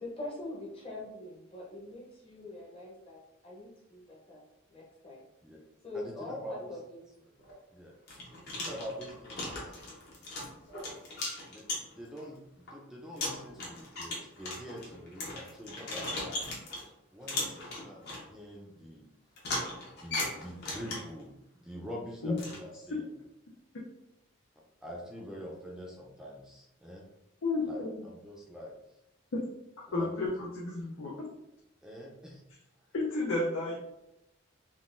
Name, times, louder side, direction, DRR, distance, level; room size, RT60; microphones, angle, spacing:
voice 1, 0.0-4.4 4.7-5.2 5.8-7.0, left 2 dB, 25° left, -4 dB, 0.8 m, -43 dB
voice 2, 5.9-6.8 7.3-7.4 7.7-7.9 8.5-9.7 11.5-11.7 11.9-16.4 17.1-19.1 20.0-23.1 24.5-27.0 27.6-28.7 29.9-30.3 30.6-30.7 31.8-32.4, equal, 5° right, -2 dB, 0.5 m, -45 dB
sound 1, 7.4-7.5 8.1-12.2 12.7-12.8 13.2-16.9 17.3-18.2 19.4-21.2 22.4-22.6, left 2 dB, 50° left, 0.9 m, -37 dB
voice 3, 27.4-27.9 29.3-29.4 29.9-31.1 32.9-33.8, left 2 dB, 80° left, -4 dB, 0.6 m, -31 dB
3.7 x 2.4 x 2.5 m, 0.88 s
head